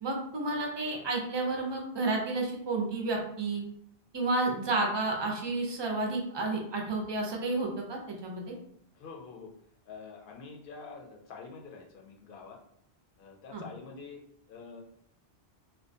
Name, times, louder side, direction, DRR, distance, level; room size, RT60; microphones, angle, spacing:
voice 1, 0.0-3.6 4.1-8.5 13.5-13.6, right 2 dB, 45° right, 0 dB, 0.3 m, -31 dB
voice 2, 8.9-9.5 9.9-12.6 13.2-14.2 14.5-14.8, left 4 dB, 65° left, 1 dB, 0.7 m, -46 dB
2.5 x 2.2 x 2.5 m, 0.69 s
omnidirectional pair, 1.1 m